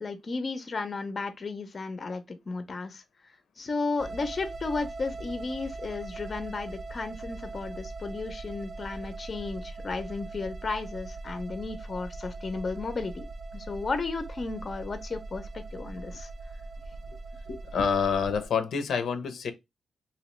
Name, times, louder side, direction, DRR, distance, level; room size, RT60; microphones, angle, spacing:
voice 1, 0.0-3.0 3.6-13.2 13.5-16.3, left 3 dB, 40° left, 0.5 m, -34 dB
sound 1, 4.0-18.5, right 3 dB, 65° right, 0.4 m, -41 dB
voice 2, 17.5-19.5, left 6 dB, 90° left, 0.5 m, -27 dB
3.0 x 2.8 x 3.0 m
wide cardioid pair, 125°, 0 cm